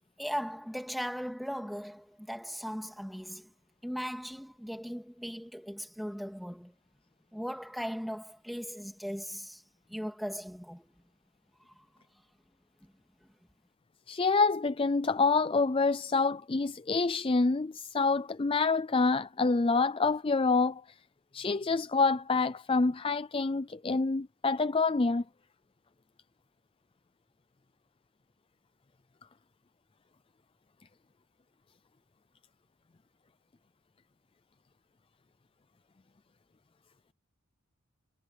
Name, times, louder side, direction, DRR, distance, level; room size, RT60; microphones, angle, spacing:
voice 1, 0.2-3.5 3.8-6.7 7.3-9.6 9.9-10.9 12.8-12.9, equal, ahead, 2.7 m, -38 dB
voice 2, 14.1-20.8 21.3-25.2, left 4 dB, 25° left, 0.4 m, -27 dB
head